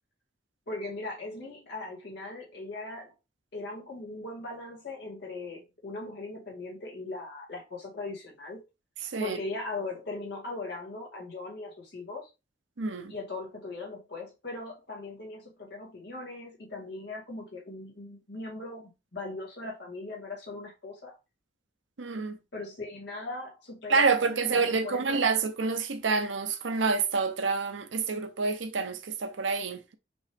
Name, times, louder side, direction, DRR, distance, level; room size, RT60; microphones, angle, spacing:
voice 1, 0.7-3.1 3.5-8.6 9.2-12.3 13.1-21.2 22.5-25.3, left 2 dB, 65° left, 2.1 m, -39 dB
voice 2, 12.8-13.1 22.0-22.4 23.9-29.9, right 4 dB, 90° right, 0.7 m, -28 dB
5.2 x 2.7 x 3.5 m
head